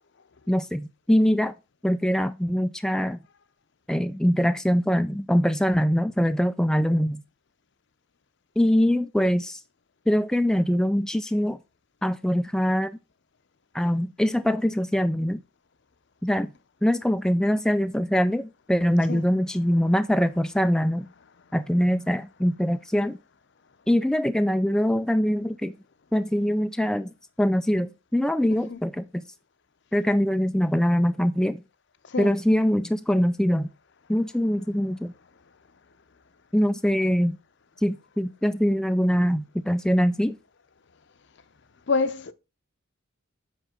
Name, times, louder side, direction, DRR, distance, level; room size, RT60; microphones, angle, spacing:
voice 1, 0.5-1.5 1.8-3.2 3.9-7.2 8.6-9.6 10.1-11.6 12.0-13.0 13.7-15.4 16.2-16.5 16.8-21.1 21.5-23.2 23.9-25.8 26.1-27.1 27.4-29.2 29.9-31.6 32.2-33.7 34.1-35.1 36.5-37.4 37.8-40.4, equal, 5° left, 0.3 m, -23 dB
voice 2, 41.9-42.3, left 4 dB, 60° left, 0.7 m, -26 dB
8.1 x 5.3 x 3.8 m
head